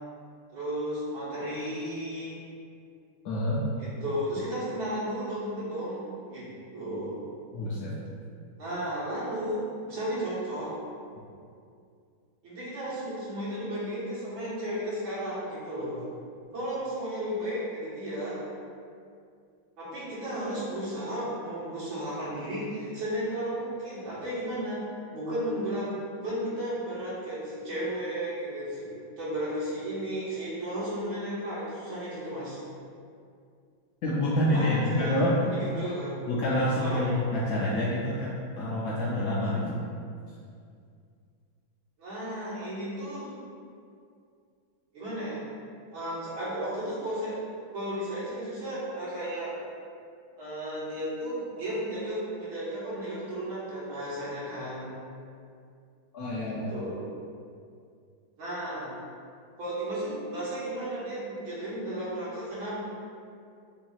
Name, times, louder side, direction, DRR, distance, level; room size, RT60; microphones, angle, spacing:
voice 1, 0.5-2.4 3.8-7.1 8.6-10.7 12.4-16.0 16.5-18.4 19.8-32.6 34.5-36.2 36.8-37.0 42.0-43.3 44.9-45.4 45.9-47.4 47.7-49.6 50.4-54.9 56.5-57.0 58.4-58.9 59.6-62.8, right 1 dB, 70° right, -10 dB, 2.2 m, -34 dB
voice 2, 3.2-3.6 7.5-8.0 34.0-35.4 36.3-39.8 56.1-56.8, left 1 dB, 80° left, -7 dB, 0.8 m, -27 dB
6.9 x 2.9 x 2.4 m, 2.3 s
omnidirectional pair, 2.3 m